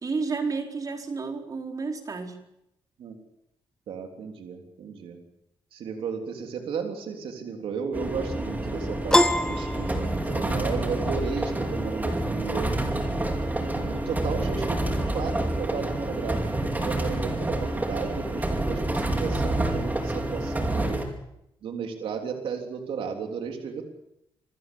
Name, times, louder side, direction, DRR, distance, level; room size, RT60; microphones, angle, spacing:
voice 1, 0.0-2.3, right 4 dB, 40° right, 3 dB, 4.4 m, -31 dB
voice 2, 3.9-5.2 5.7-12.7 13.6-16.4 16.8-21.0 21.6-23.9, right 6 dB, 90° right, 3 dB, 3.5 m, -34 dB
sound 1, 7.9-21.0, right 1 dB, 20° right, 5.0 m, -28 dB
Piano, 9.1-10.7, left 1 dB, 10° left, 1.5 m, -23 dB
27.5 x 15.5 x 8.6 m, 0.82 s
cardioid pair, 100°, 9 cm